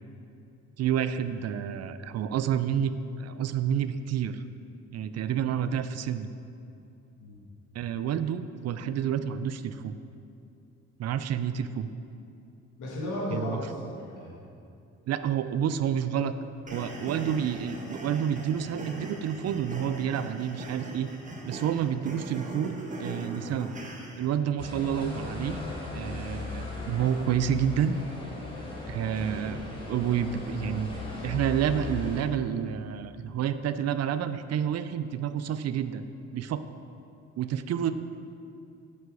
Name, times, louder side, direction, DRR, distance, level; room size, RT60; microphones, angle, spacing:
voice 1, 0.8-2.9 3.2-4.4 4.9-6.3 7.7-10.0 11.0-11.9 13.3-13.6 15.1-16.3 16.7-21.1 21.5-23.7 24.2-25.6 25.9-28.0 28.9-30.9 31.2-36.1 36.3-36.6 37.4-37.9, right 9 dB, 55° right, 12 dB, 0.5 m, -29 dB
voice 2, 12.8-14.3 22.0-22.1, left 1 dB, 80° left, -5 dB, 1.5 m, -35 dB
sound 1, 16.7-24.3, right 2 dB, 25° right, 1.1 m, -40 dB
sound 2, 24.6-32.2, left 2 dB, 15° left, 1.9 m, -37 dB
7.7 x 5.6 x 4.9 m, 2.7 s
cardioid pair, 90°, 30 cm